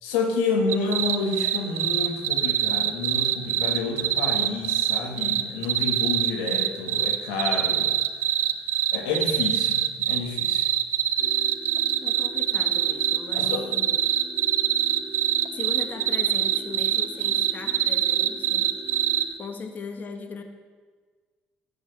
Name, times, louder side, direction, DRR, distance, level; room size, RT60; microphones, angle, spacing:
voice 1, 0.0-7.9 8.9-10.6 13.3-13.6, left 4 dB, 90° left, 3 dB, 1.7 m, -29 dB
sound 1, 0.7-19.2, right 11 dB, 70° right, 0.8 m, -23 dB
sound 2, 11.2-19.2, right 2 dB, ahead, 4.5 m, -43 dB
voice 2, 12.0-14.0 15.5-18.7 19.4-20.4, left 5 dB, 45° left, 5 dB, 1.6 m, -38 dB
13.5 x 7.4 x 8.2 m, 1.5 s
supercardioid pair, 75°, 4 cm